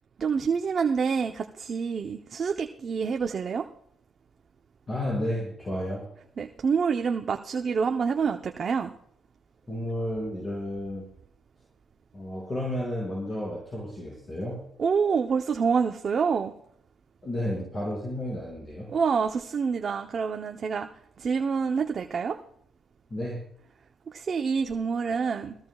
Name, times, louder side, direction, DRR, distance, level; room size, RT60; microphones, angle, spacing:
voice 1, 0.2-3.7 6.4-8.9 14.8-16.5 18.9-20.9 21.2-22.4 24.1-25.6, right 6 dB, 50° right, 4 dB, 0.8 m, -27 dB
voice 2, 4.9-6.0 9.7-11.1 12.1-14.6 17.2-18.9 23.1-23.4, left 1 dB, 25° left, -4 dB, 5.8 m, -32 dB
21.0 x 15.5 x 2.4 m, 0.68 s
cardioid pair, 90°, 0 cm